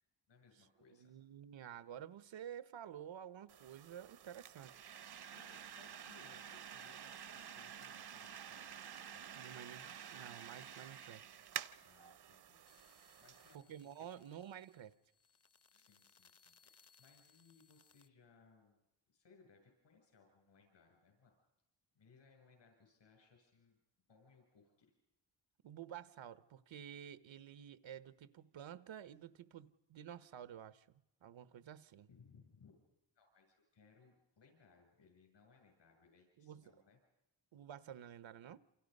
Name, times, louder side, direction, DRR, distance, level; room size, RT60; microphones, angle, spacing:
voice 1, 0.0-1.1 5.1-8.8 9.1-9.4 11.8-13.7 15.7-18.8 19.1-21.3 21.9-23.8 24.1-24.9 32.1-32.8 33.2-37.0, left 5 dB, 75° left, 7.7 m, -67 dB
voice 2, 0.9-4.7 9.4-11.2 13.5-14.9 25.6-30.9 31.2-32.1 36.4-36.6 37.5-38.6, right 10 dB, 85° right, 1.1 m, -51 dB
sound 1, 3.5-13.6, right 8 dB, 60° right, 0.8 m, -50 dB
sound 2, 12.7-18.1, left 5 dB, 35° left, 0.8 m, -70 dB
28.5 x 27.5 x 5.4 m
wide cardioid pair, 115°, 45 cm